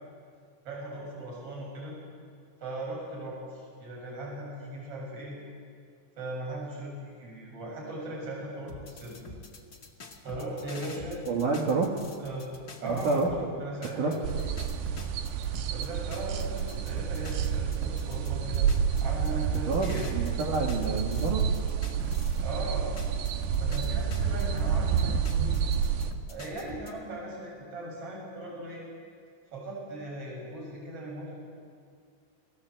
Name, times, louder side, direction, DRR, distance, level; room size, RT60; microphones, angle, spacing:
voice 1, 0.6-2.0 2.6-5.4 6.2-9.2 10.2-11.6 12.2-12.5 12.8-14.2 15.7-18.7 19.0-20.1 22.4-22.9 23.6-25.5 26.3-28.8 29.5-31.3, right 1 dB, 30° right, -2 dB, 7.7 m, -38 dB
sound 1, 8.7-13.4 13.8-22.6 23.0-26.9, left 2 dB, 40° left, 1.4 m, -46 dB
voice 2, 11.3-11.9 12.8-13.3 14.0-14.2 19.6-21.4, right 3 dB, 55° right, 1 dB, 2.8 m, -28 dB
sound 2, 14.2-26.1, right 7 dB, 75° right, 3.1 m, -29 dB
29.0 x 20.5 x 7.9 m, 2.2 s
omnidirectional pair, 5.2 m